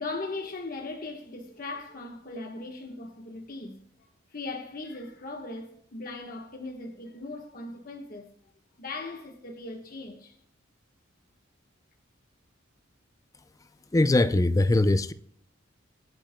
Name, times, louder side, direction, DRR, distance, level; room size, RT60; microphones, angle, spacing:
voice 1, 0.0-8.3 8.8-10.4, left 3 dB, 45° left, 1.3 m, -39 dB
voice 2, 13.9-15.1, left 2 dB, 15° left, 0.4 m, -21 dB
25.0 x 8.7 x 2.2 m
head